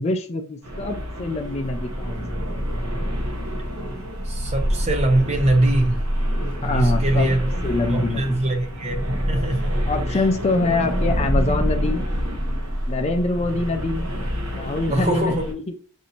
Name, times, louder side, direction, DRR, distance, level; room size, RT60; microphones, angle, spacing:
voice 1, 0.0-2.5 6.6-7.4 7.6-8.4 9.8-12.0 12.9-14.1 14.5-15.6, left 2 dB, 30° left, 0.4 m, -25 dB
sound 1, 0.6-15.5, equal, 75° right, 0.9 m, -26 dB
voice 2, 4.3-6.0 6.7-7.5 7.9-9.0 9.3-9.7 10.1-10.2 14.9-15.5, right 1 dB, 30° right, 0.7 m, -22 dB
5.2 x 2.7 x 2.8 m
head